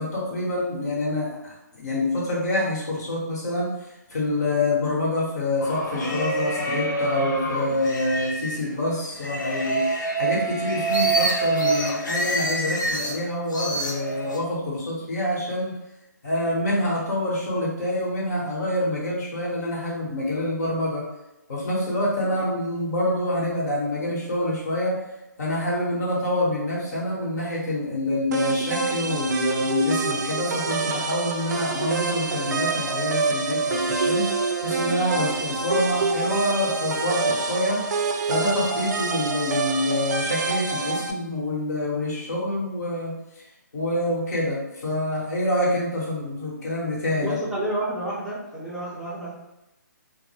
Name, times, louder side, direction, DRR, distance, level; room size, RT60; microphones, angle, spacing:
voice 1, 0.0-3.7 4.1-9.8 10.2-15.7 16.2-21.0 21.5-24.9 25.4-34.3 34.6-37.8 38.3-43.1 43.7-47.4, left 1 dB, 60° left, -4 dB, 1.1 m, -26 dB
sound 1, 5.6-8.6 9.2-13.2 13.5-14.4, right 2 dB, 80° left, 0.6 m, -26 dB
sound 2, 28.3-41.1, right 4 dB, 65° right, 0.4 m, -26 dB
voice 2, 47.2-49.3, right 1 dB, ahead, -12 dB, 0.5 m, -29 dB
2.1 x 2.1 x 3.2 m, 0.92 s
figure-of-eight pair, 145°, 10 cm